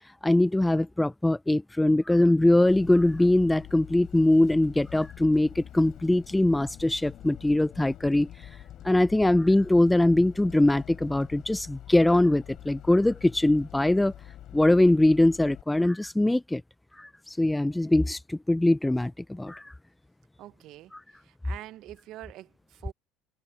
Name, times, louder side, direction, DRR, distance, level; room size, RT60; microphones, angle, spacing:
voice 1, 0.2-8.3 8.8-14.1 14.5-16.6 17.0-19.7, left 1 dB, 10° left, 0.4 m, -22 dB
Bus, 2.7-15.6, left 12 dB, 55° left, 3.8 m, -46 dB
voice 2, 20.4-20.9 21.2-22.9, right 15 dB, 60° right, 0.9 m, -45 dB
supercardioid pair, 85°, 0 cm